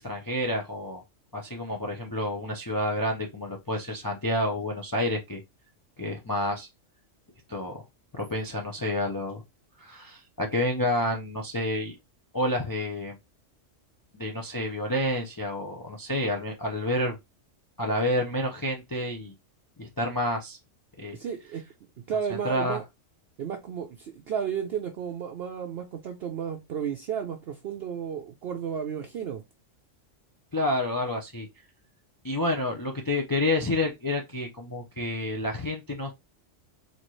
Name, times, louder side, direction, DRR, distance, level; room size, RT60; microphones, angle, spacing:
voice 1, 0.0-1.0 1.3-5.4 6.0-6.7 7.5-7.8 8.1-9.4 9.8-12.0 12.3-13.2 14.1-17.2 17.8-19.3 19.8-20.6 21.0-21.2 22.4-22.8 30.5-31.5 32.2-36.1, left 1 dB, 25° left, 0.4 m, -29 dB
voice 2, 21.1-21.6 22.1-22.8 23.4-29.4, right 7 dB, 60° right, 0.7 m, -33 dB
4.3 x 2.9 x 3.0 m
omnidirectional pair, 1.3 m